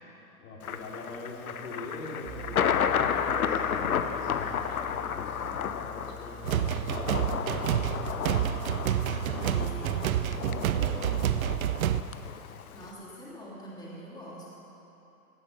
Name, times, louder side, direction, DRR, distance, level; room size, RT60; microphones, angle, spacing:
voice 1, 0.4-9.5 10.2-11.7, left 2 dB, 65° left, -3 dB, 3.0 m, -43 dB
Thunder, 0.6-12.9, left 8 dB, 85° left, 0.7 m, -32 dB
Piano, 2.2-8.5, left 3 dB, 55° right, 2.1 m, -47 dB
sound 1, 6.4-12.0, right 11 dB, 75° right, 0.6 m, -28 dB
voice 2, 8.9-10.2 12.7-14.5, right 1 dB, 10° left, -7 dB, 3.1 m, -44 dB
16.5 x 9.0 x 5.4 m, 3.0 s
hypercardioid pair, 115°, 42 cm